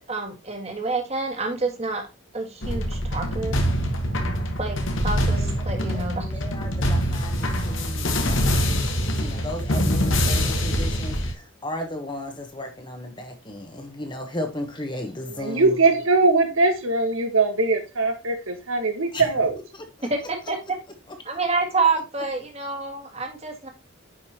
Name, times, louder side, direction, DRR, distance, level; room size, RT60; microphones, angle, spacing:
voice 1, 0.1-2.0 2.3-3.5 4.6-4.8 5.0-6.3 20.1-20.6 21.3-23.7, right 3 dB, 30° right, 1.9 m, -27 dB
sound 1, 2.6-11.3, equal, 65° left, 1.7 m, -24 dB
voice 2, 5.4-15.8 19.1-19.3 19.7-20.1, left 1 dB, 20° left, 1.4 m, -35 dB
voice 3, 15.4-19.6, right 3 dB, 80° right, 1.6 m, -21 dB
9.9 x 5.3 x 2.9 m
head